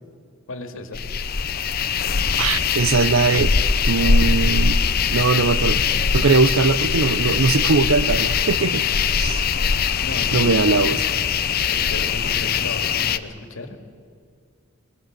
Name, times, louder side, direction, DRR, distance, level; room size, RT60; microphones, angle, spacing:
voice 1, 0.5-1.0 10.0-11.0 11.7-13.8, left 2 dB, 75° left, 2.1 m, -35 dB
sound 1, 0.9-13.2, left 6 dB, 45° left, 0.7 m, -21 dB
voice 2, 2.4-3.5 3.8-4.8 5.1-5.8 6.1-8.9 9.2-9.5 10.3-11.0, right 4 dB, 75° right, 0.7 m, -20 dB
21.5 x 21.5 x 7.5 m
head